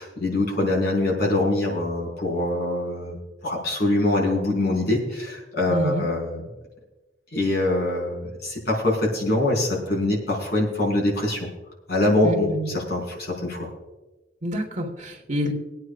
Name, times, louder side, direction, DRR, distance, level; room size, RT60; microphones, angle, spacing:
voice 1, 0.0-3.2 3.4-6.5 7.3-11.5 11.9-13.7, left 2 dB, 60° left, -2 dB, 4.7 m, -24 dB
voice 2, 5.7-6.0 12.2-12.7 14.4-15.5, equal, 40° right, 2 dB, 1.6 m, -27 dB
24.5 x 9.3 x 2.5 m, 1.1 s
head